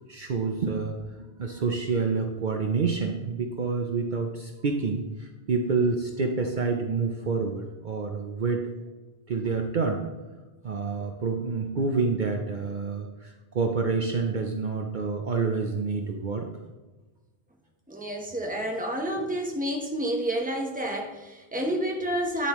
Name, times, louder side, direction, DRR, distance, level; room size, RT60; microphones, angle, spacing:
voice 1, 0.1-8.6 9.3-10.1 10.6-16.5, right 4 dB, 55° right, 3 dB, 0.8 m, -28 dB
voice 2, 17.9-22.5, right 1 dB, 10° right, 1 dB, 1.0 m, -29 dB
9.7 x 7.0 x 3.1 m, 1.2 s
omnidirectional pair, 1.1 m